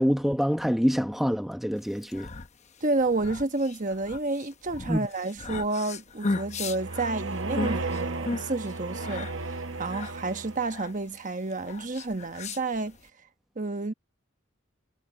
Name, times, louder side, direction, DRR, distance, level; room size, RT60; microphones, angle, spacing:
voice 1, 0.0-2.3 4.9-5.1, equal, ahead, 0.9 m, -26 dB
sound 1, 1.9-13.1, left 3 dB, 35° left, 0.9 m, -37 dB
voice 2, 2.8-13.0 13.6-13.9, right 2 dB, 40° right, 1.2 m, -30 dB
sound 2, 6.3-10.9, right 3 dB, 65° right, 1.0 m, -34 dB
head